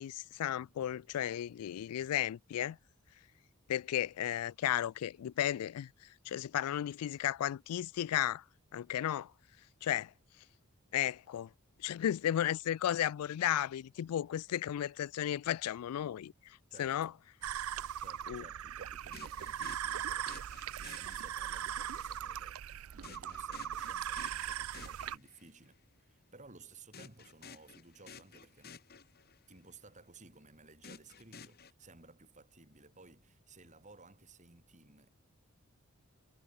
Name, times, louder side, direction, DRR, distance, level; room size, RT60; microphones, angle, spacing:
voice 1, 0.0-2.8 3.7-5.9 6.3-8.4 8.7-9.3 9.8-10.1 10.9-11.5 11.8-16.3 16.8-17.1 18.3-18.4, left 11 dB, 90° left, 0.3 m, -34 dB
voice 2, 16.7-17.2 18.0-28.7 29.5-35.1, right 3 dB, 35° right, 5.7 m, -57 dB
sound 1, 17.4-25.2, right 10 dB, 70° right, 0.4 m, -39 dB
sound 2, 19.1-21.8 23.0-25.7 26.9-29.6 30.8-31.7, left 5 dB, 45° left, 1.8 m, -54 dB
head